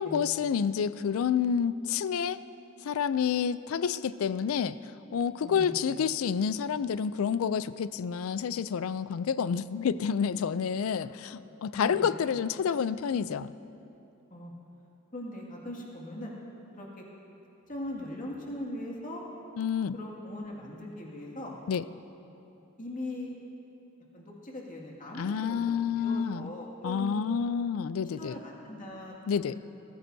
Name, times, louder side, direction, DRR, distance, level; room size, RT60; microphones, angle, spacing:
voice 1, 0.0-2.4 2.8-4.8 5.1-13.5 19.6-20.0 21.7-21.8 25.1-26.5 26.8-28.4 29.3-29.6, left 7 dB, 75° left, 15 dB, 0.4 m, -29 dB
voice 2, 5.4-5.8 11.7-12.2 14.3-14.5 15.1-16.3 16.7-17.0 17.7-19.2 19.9-21.5 22.8-23.3 24.1-27.2 28.2-29.1 29.5-29.6, left 1 dB, 40° left, -3 dB, 2.1 m, -40 dB
20.0 x 15.0 x 2.7 m, 2.9 s
head